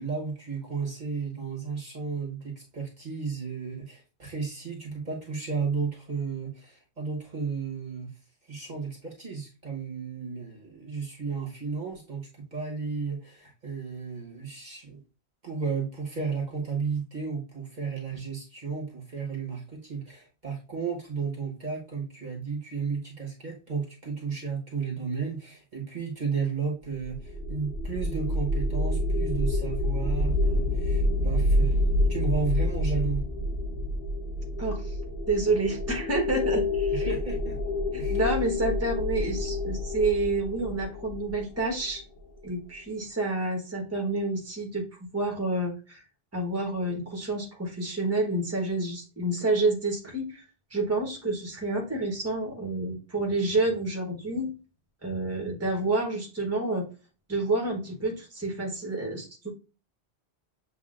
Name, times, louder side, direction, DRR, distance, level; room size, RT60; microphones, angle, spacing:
voice 1, 0.0-8.1 8.5-15.0 15.4-31.8 32.1-33.2 37.0-37.6 38.0-38.2, right 5 dB, 45° right, -1 dB, 1.3 m, -33 dB
sound 1, 27.0-42.2, left 1 dB, 60° left, 1.0 m, -28 dB
voice 2, 34.6-34.9 35.3-37.1 37.9-42.0 42.4-46.0 46.3-50.4 50.7-54.5 55.0-56.8 57.3-59.5, right 2 dB, 15° right, 0 dB, 1.2 m, -29 dB
7.3 x 2.6 x 2.5 m, 0.33 s
omnidirectional pair, 1.1 m